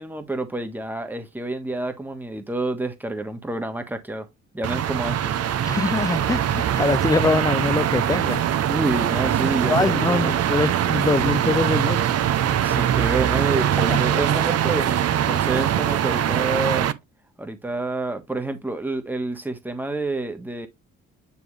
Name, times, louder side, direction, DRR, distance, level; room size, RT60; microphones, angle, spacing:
voice 1, 0.0-4.3 4.5-5.3 8.7-10.3 12.6-16.9 17.4-20.7, right 2 dB, 5° right, 1.4 m, -28 dB
sound 1, 4.6-16.9, right 10 dB, 55° right, 0.7 m, -22 dB
voice 2, 5.7-8.4 9.7-12.0 13.9-14.0, left 3 dB, 10° left, 0.3 m, -23 dB
9.6 x 3.2 x 3.3 m
cardioid pair, 90°, 30 cm